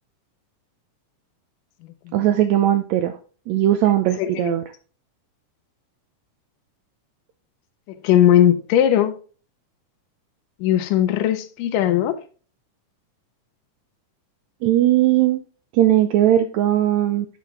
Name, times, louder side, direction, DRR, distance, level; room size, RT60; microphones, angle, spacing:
voice 1, 2.1-3.2 3.5-4.6 14.6-15.4 15.7-17.3, right 12 dB, 80° right, 1.6 m, -18 dB
voice 2, 4.2-4.6 8.0-9.2 10.6-12.2, left 11 dB, 80° left, 2.3 m, -18 dB
7.4 x 5.9 x 3.5 m
omnidirectional pair, 3.7 m